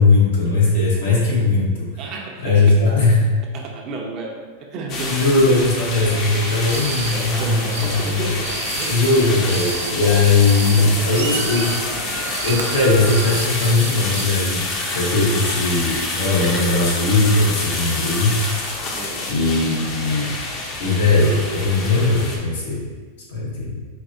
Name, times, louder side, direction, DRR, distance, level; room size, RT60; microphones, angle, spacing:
voice 1, 0.0-1.9 2.4-3.1 5.1-8.3 8.9-12.0 12.4-14.7 14.9-18.3 19.3-20.3 20.8-22.8 23.3-23.8, left 3 dB, 85° left, -5 dB, 1.3 m, -19 dB
voice 2, 2.0-2.8 3.5-5.3 5.6-5.7 7.1-8.5 8.8-9.2 9.8-9.9 10.6-11.1 12.5-12.6 18.9-19.3 23.4-23.5, right 3 dB, 40° right, 0 dB, 0.6 m, -32 dB
sound 1, 4.9-22.4, left 2 dB, 40° left, 0.6 m, -27 dB
sound 2, 6.1-14.3, right 6 dB, 80° right, 0.3 m, -32 dB
4.5 x 2.6 x 2.6 m, 1.5 s
supercardioid pair, 130°, 0 cm